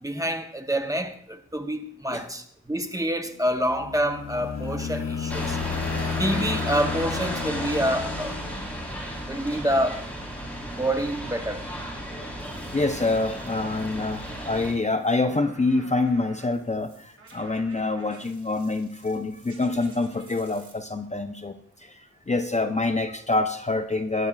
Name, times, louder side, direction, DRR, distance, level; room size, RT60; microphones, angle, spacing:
voice 1, 0.0-5.6 6.2-8.4 9.3-10.1 10.7-11.6, right 1 dB, 10° right, 0.9 m, -27 dB
sound 1, 3.3-9.1, left 6 dB, 60° left, 1.0 m, -32 dB
sound 2, 5.3-14.7, equal, 5° left, 3.8 m, -34 dB
voice 2, 5.7-6.0 12.7-24.3, left 2 dB, 25° left, 0.6 m, -26 dB
sound 3, 12.4-20.7, right 2 dB, 50° right, 4.0 m, -51 dB
19.0 x 11.0 x 2.4 m
wide cardioid pair, 90°, 30 cm